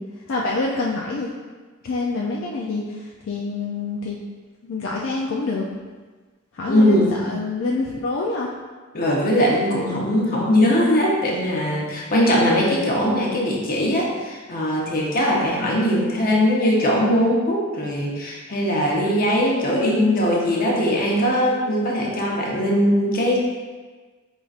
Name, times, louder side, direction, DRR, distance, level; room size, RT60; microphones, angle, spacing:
voice 1, 0.3-1.3 1.8-4.2 4.6-5.7 6.5-8.5 19.7-20.3, left 3 dB, 65° left, -3 dB, 0.4 m, -26 dB
voice 2, 6.7-7.2 8.9-23.4, equal, 45° left, -2 dB, 0.8 m, -20 dB
4.5 x 4.0 x 2.4 m, 1.4 s
head